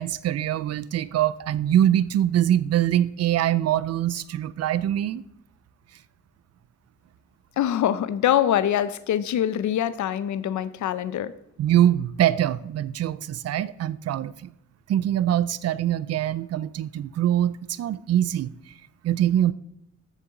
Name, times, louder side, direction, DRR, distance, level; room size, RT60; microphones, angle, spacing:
voice 1, 0.0-5.2 11.6-14.5 14.9-18.5 19.0-19.5, right 11 dB, 60° right, 0.4 m, -23 dB
voice 2, 7.6-11.3, left 11 dB, 80° left, 0.6 m, -24 dB
14.0 x 6.8 x 3.8 m
wide cardioid pair, 170°, 29 cm